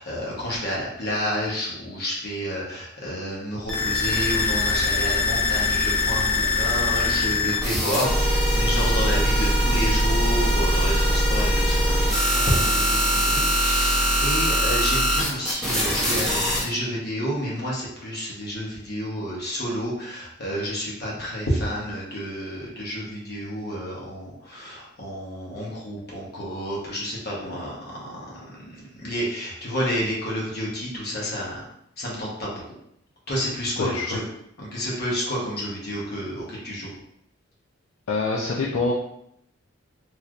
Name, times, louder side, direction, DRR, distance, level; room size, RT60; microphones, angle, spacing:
voice 1, 0.0-31.6 32.0-32.5 33.3-34.2 34.6-36.9, equal, 55° left, -5 dB, 1.1 m, -30 dB
sound 1, 3.7-16.6, left 1 dB, ahead, 0.8 m, -22 dB
voice 2, 33.8-34.2 38.1-38.9, left 3 dB, 75° left, -4 dB, 0.5 m, -25 dB
3.2 x 2.8 x 2.4 m, 0.74 s
head